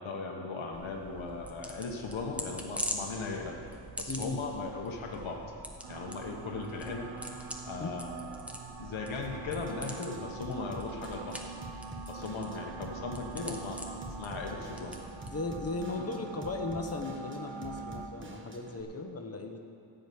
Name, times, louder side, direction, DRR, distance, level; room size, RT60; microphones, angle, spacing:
voice 1, 0.0-3.6 4.0-5.4 5.9-8.5 8.8-11.4 12.1-13.8 14.2-15.0 15.9-16.1, left 3 dB, 90° left, 1 dB, 1.3 m, -38 dB
sound 1, 0.7-15.9, equal, 5° right, 1.0 m, -44 dB
voice 2, 4.1-4.4 7.8-7.9 15.3-19.6, left 3 dB, 30° left, 4 dB, 1.1 m, -37 dB
sound 2, 5.8-18.1, right 5 dB, 80° right, 1.0 m, -45 dB
Drum kit / Drum, 9.2-18.8, right 1 dB, 25° right, 1.1 m, -47 dB
15.0 x 5.1 x 8.4 m, 2.5 s
wide cardioid pair, 140°, 46 cm